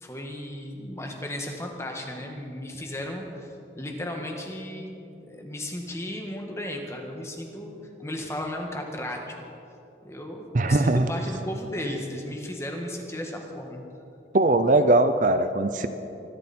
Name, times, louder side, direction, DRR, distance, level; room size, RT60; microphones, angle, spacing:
voice 1, 0.0-4.9 5.2-9.5 10.0-13.8, left 1 dB, 15° left, 2 dB, 1.7 m, -35 dB
voice 2, 10.5-11.1 14.3-15.9, right 2 dB, 45° right, 9 dB, 0.6 m, -20 dB
25.0 x 12.5 x 4.4 m, 2.8 s
head